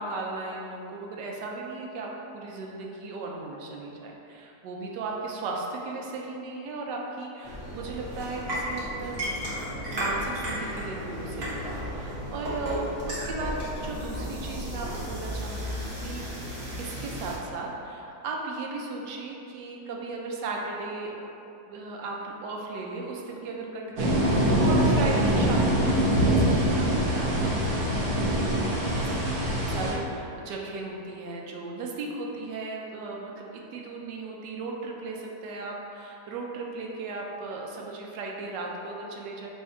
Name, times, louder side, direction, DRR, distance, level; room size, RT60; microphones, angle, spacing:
voice 1, 0.0-9.2 9.9-16.2 16.8-21.3 21.7-27.8 28.9-29.4 29.7-39.5, right 3 dB, 90° right, -1 dB, 1.2 m, -36 dB
sound 1, 7.4-17.4, equal, 45° right, 1.1 m, -34 dB
sound 2, 24.0-29.9, right 1 dB, 60° right, 1.3 m, -23 dB
3.2 x 2.7 x 4.4 m, 2.8 s
omnidirectional pair, 1.8 m